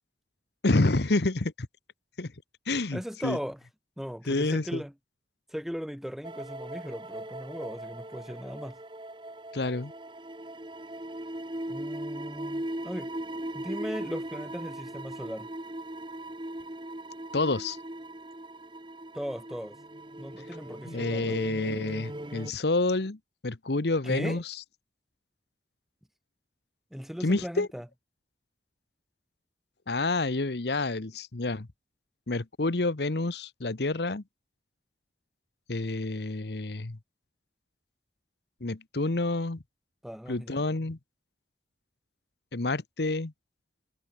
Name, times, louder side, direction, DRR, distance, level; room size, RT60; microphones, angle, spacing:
voice 1, 0.6-1.7 2.2-2.3 2.7-3.4 4.3-4.8 9.5-9.9 17.3-17.8 20.8-24.5 27.2-27.7 29.9-31.7 32.3-34.2 35.7-37.0 38.6-39.6 40.3-41.0 42.5-43.3, left 2 dB, 70° left, 1.1 m, -28 dB
voice 2, 2.9-3.6 4.0-4.9 5.5-8.8 11.7-13.1 13.5-15.5 19.1-19.8 20.2-21.4 24.0-24.4 26.9-27.9 40.0-40.6, equal, ahead, 0.6 m, -38 dB
sound 1, 6.2-22.5, right 1 dB, 25° right, 1.6 m, -39 dB
head